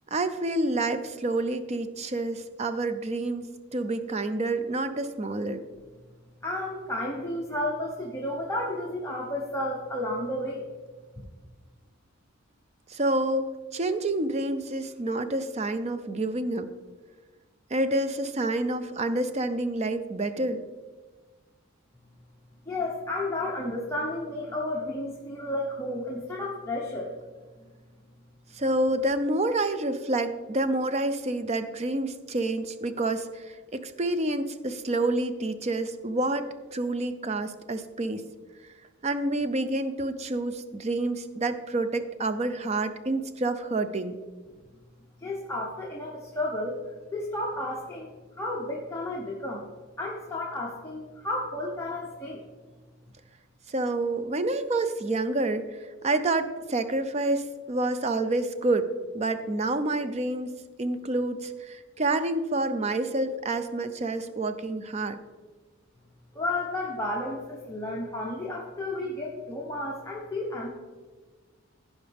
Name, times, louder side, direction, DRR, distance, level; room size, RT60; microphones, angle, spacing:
voice 1, 0.1-5.6 12.9-16.7 17.7-20.6 28.5-38.2 39.0-44.2 53.7-58.9 59.1-60.5 60.8-65.2, right 2 dB, 30° right, 11 dB, 0.5 m, -28 dB
voice 2, 6.4-10.7 11.2-11.3 22.6-27.2 27.6-27.7 45.2-46.8 47.1-49.7 50.0-52.4 66.3-70.7, left 1 dB, 15° left, -3 dB, 1.0 m, -32 dB
15.5 x 5.3 x 3.5 m, 1.4 s
head